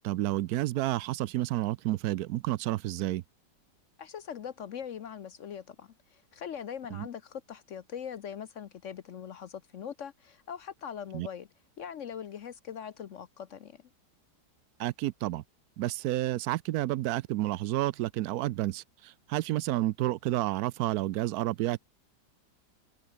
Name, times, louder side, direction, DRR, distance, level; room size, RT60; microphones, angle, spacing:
voice 1, 0.0-3.2 6.9-7.1 11.1-11.3 14.8-15.4 15.8-21.8, right 15 dB, 70° right, 1.0 m, -30 dB
voice 2, 4.0-11.5 11.8-13.8, left 8 dB, 55° left, 0.9 m, -41 dB
omnidirectional pair, 1.8 m